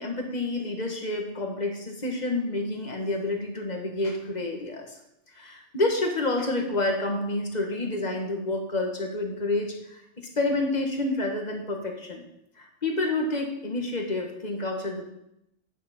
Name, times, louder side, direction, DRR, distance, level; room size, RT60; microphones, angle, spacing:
voice 1, 0.0-4.9 5.3-12.2 12.6-15.1, left 2 dB, 40° left, 2 dB, 1.4 m, -29 dB
9.1 x 6.8 x 4.2 m, 0.81 s
omnidirectional pair, 1.1 m